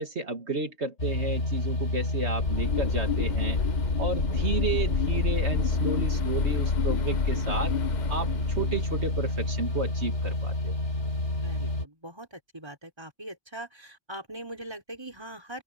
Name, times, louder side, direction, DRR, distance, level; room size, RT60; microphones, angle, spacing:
voice 1, 0.0-3.6 4.0-7.7 8.1-10.8, right 3 dB, 70° right, 2.6 m, -32 dB
sound 1, 1.0-11.9, left 1 dB, 85° left, 3.7 m, -29 dB
sound 2, 2.4-9.8, left 7 dB, 45° left, 0.8 m, -30 dB
voice 2, 4.2-4.5 11.4-15.6, right 1 dB, 20° right, 5.0 m, -42 dB
open air
omnidirectional pair, 1.2 m